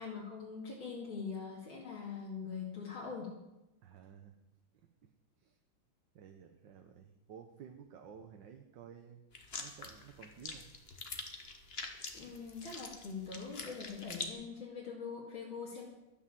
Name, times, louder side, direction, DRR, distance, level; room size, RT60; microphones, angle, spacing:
voice 1, 0.0-3.3 12.1-15.9, left 5 dB, 80° left, -5 dB, 3.2 m, -43 dB
voice 2, 3.8-4.3 6.1-9.2 9.6-10.7, right 8 dB, 70° right, 5 dB, 1.6 m, -53 dB
sound 1, 9.3-14.3, left 3 dB, 35° left, 1.5 m, -45 dB
13.0 x 9.7 x 7.5 m, 0.94 s
omnidirectional pair, 2.2 m